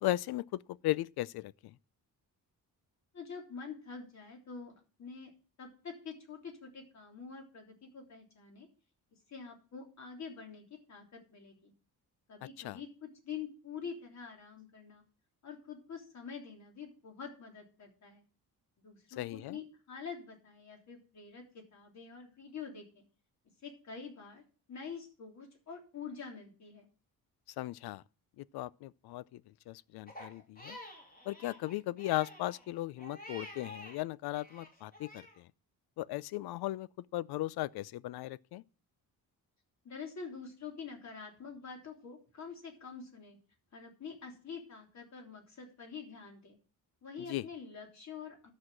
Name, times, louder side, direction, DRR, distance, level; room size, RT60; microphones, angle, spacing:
voice 1, 0.0-1.7 12.6-12.8 19.2-19.6 27.6-28.0 28.4-29.4 29.7-30.8 31.3-35.5 36.0-38.6 47.3-47.4, left 16 dB, 85° left, 0.5 m, -37 dB
voice 2, 3.1-5.3 5.6-8.7 9.3-11.7 12.3-15.0 15.4-18.2 18.8-23.0 23.6-24.4 24.7-26.9 39.8-43.4 43.7-46.6 47.0-48.5, left 6 dB, 45° left, 3.3 m, -46 dB
Crying sobbing, 30.1-34.0 34.3-35.4, left 1 dB, 25° left, 3.0 m, -50 dB
12.0 x 6.4 x 6.2 m
cardioid pair, 155°, 37 cm